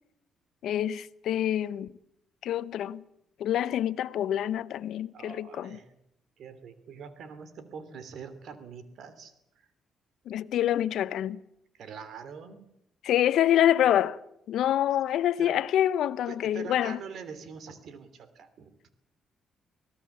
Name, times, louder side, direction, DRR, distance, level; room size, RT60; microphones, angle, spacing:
voice 1, 0.6-1.9 2.4-3.0 3.4-5.7 10.3-11.4 13.0-14.2 14.5-17.0, left 11 dB, 75° left, 0.8 m, -26 dB
voice 2, 5.1-5.9 6.4-9.7 11.7-12.7 15.4-15.6 16.3-18.9, right 6 dB, 70° right, 2.9 m, -44 dB
24.5 x 18.0 x 7.3 m
cardioid pair, 90°, 0 cm